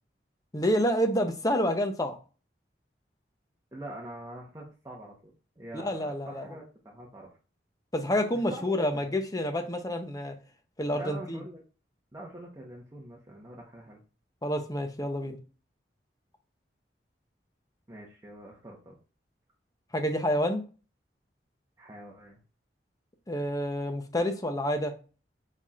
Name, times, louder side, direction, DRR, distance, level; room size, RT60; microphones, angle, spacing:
voice 1, 0.5-2.2 5.7-6.5 7.9-10.4 10.8-11.4 14.4-15.4 19.9-20.6 23.3-24.9, equal, 20° left, 0.7 m, -28 dB
voice 2, 3.7-7.3 8.5-8.6 8.9-9.2 10.9-11.6 12.1-14.0 17.9-19.0 21.8-22.4, right 1 dB, 20° right, 0.9 m, -44 dB
4.6 x 4.2 x 2.4 m
head